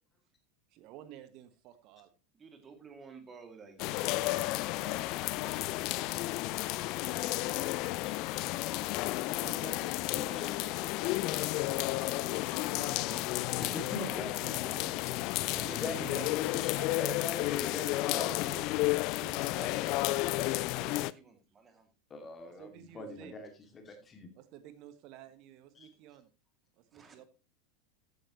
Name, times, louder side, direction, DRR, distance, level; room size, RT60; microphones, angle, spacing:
voice 1, 0.7-2.1 4.9-5.9 9.4-13.0 15.8-16.3 20.5-21.0 22.6-23.3 24.4-26.3 26.9-27.2, right 11 dB, 45° right, 12 dB, 1.3 m, -53 dB
voice 2, 2.3-5.1 7.2-8.2 12.5-16.0 16.5-16.9 19.1-21.9 26.9-27.2, right 4 dB, 20° right, 7 dB, 2.6 m, -52 dB
sound 1, 3.8-21.1, left 19 dB, 45° left, 0.5 m, -32 dB
voice 3, 10.0-10.5 13.6-14.6 15.7-18.6 22.1-24.3 25.8-25.9, left 3 dB, 25° left, 5 dB, 2.4 m, -42 dB
14.5 x 9.5 x 3.1 m, 0.31 s
figure-of-eight pair, 80°, 0 cm